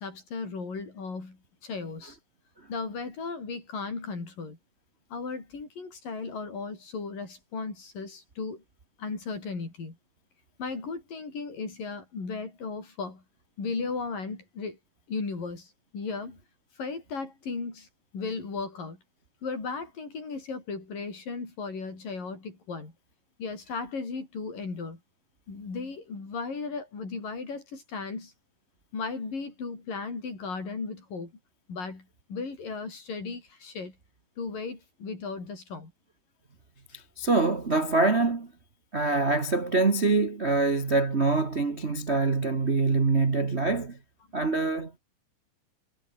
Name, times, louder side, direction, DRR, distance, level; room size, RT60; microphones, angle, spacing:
voice 1, 0.0-2.2 2.7-4.6 5.1-8.6 9.0-10.0 10.6-13.2 13.6-14.8 15.1-16.4 16.8-17.9 18.1-19.0 19.4-22.9 23.4-25.0 25.5-28.3 28.9-31.3 31.7-34.0 34.4-35.9 36.9-37.0, left 4 dB, 65° left, 8.8 m, -36 dB
voice 2, 36.9-38.5 38.9-44.0 44.3-45.0, right 3 dB, 85° right, 0.5 m, -25 dB
omnidirectional pair, 4.1 m